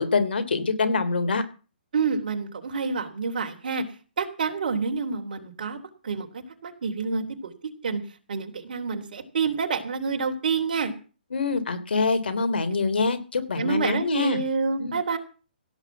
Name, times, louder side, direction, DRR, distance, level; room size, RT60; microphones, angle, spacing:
voice 1, 0.0-1.4 11.3-14.4 14.8-15.0, left 4 dB, 80° left, 10 dB, 3.4 m, -25 dB
voice 2, 1.9-3.8 4.2-5.8 6.0-6.3 6.6-7.5 7.8-8.0 8.3-10.9 13.6-15.2, right 5 dB, 60° right, 5 dB, 3.5 m, -28 dB
16.5 x 8.1 x 7.3 m, 0.35 s
hypercardioid pair, 155°, 5 cm